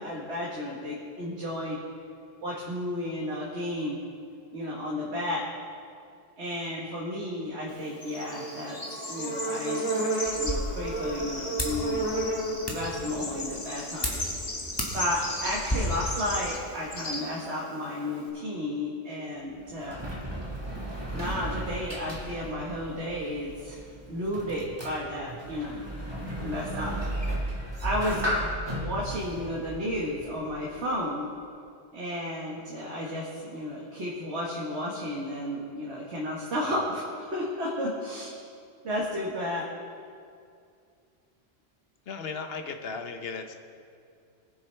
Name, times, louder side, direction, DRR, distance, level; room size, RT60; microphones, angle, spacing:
voice 1, 0.0-1.8 2.4-4.0 4.5-5.5 6.4-9.8 10.4-12.1 12.7-14.2 14.9-20.1 21.1-23.8 24.1-25.8 26.4-27.0 27.8-28.3 28.8-31.3 31.9-38.4 38.8-39.7, left 1 dB, 85° right, -4 dB, 1.7 m, -33 dB
Bird / Insect, 7.7-18.3, right 1 dB, 40° left, 1.7 m, -33 dB
sound 1, 10.3-15.8, equal, 25° left, 1.6 m, -36 dB
Sliding door, 19.3-30.8, right 1 dB, 25° right, 1.6 m, -35 dB
voice 2, 42.1-43.5, left 5 dB, 65° left, 6 dB, 1.1 m, -36 dB
20.0 x 7.5 x 3.3 m, 2.4 s
omnidirectional pair, 1.1 m